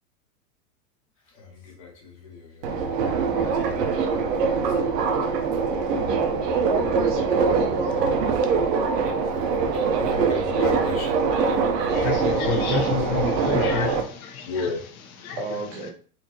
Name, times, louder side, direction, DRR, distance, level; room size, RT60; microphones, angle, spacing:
voice 1, 1.3-2.8 9.9-11.1 14.4-14.8, left 4 dB, 25° left, 0.5 m, -33 dB
Subway metro underground, 2.6-14.0, right 5 dB, 80° right, 0.9 m, -23 dB
voice 2, 6.7-8.2 15.4-15.9, right 2 dB, 25° right, 0.4 m, -31 dB
voice 3, 11.9-15.9, left 6 dB, 60° left, 1.1 m, -29 dB
4.2 x 2.8 x 2.9 m
supercardioid pair, 170°, 47 cm